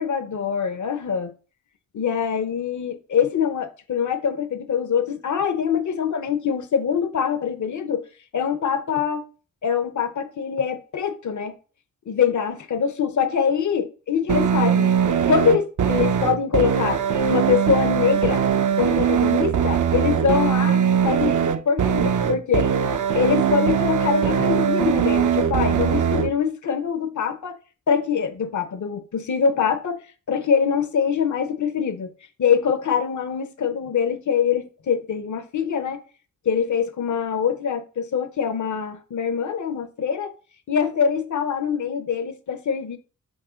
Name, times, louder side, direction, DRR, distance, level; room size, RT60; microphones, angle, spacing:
voice 1, 0.0-1.3 1.9-8.0 8.3-9.2 9.6-11.5 12.1-14.9 15.3-17.0 17.3-18.4 18.7-21.4 21.7-22.7 23.1-27.6 27.9-30.0 30.3-32.1 32.4-36.0 36.5-40.3 40.7-43.0, left 7 dB, 55° left, 0.8 m, -24 dB
sound 1, 14.3-26.3, right 8 dB, 55° right, 0.7 m, -21 dB
6.4 x 3.6 x 5.0 m
cardioid pair, 60°, 35 cm